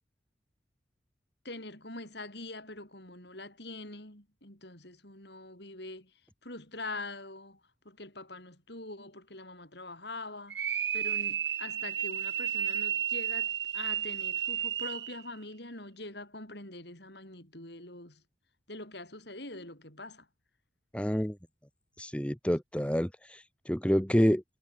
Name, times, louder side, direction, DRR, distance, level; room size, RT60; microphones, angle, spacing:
voice 1, 1.4-6.1 6.4-7.6 7.8-18.2 18.7-20.3, left 2 dB, 60° left, 7.8 m, -44 dB
sound 1, 10.5-15.2, right 10 dB, 60° right, 2.2 m, -32 dB
voice 2, 20.9-21.4 22.0-24.4, equal, 5° left, 1.4 m, -28 dB
head